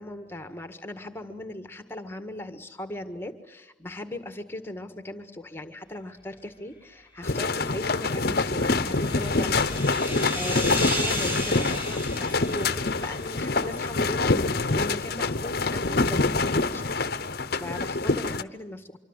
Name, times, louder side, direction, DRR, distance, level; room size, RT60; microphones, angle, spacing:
voice 1, 0.0-19.0, left 1 dB, 10° left, 8 dB, 1.7 m, -38 dB
sound 1, 7.2-18.4, left 3 dB, 55° left, 0.9 m, -26 dB
sound 2, 8.2-13.6, left 1 dB, 10° right, 5.6 m, -34 dB
26.0 x 24.5 x 8.1 m, 1.0 s
head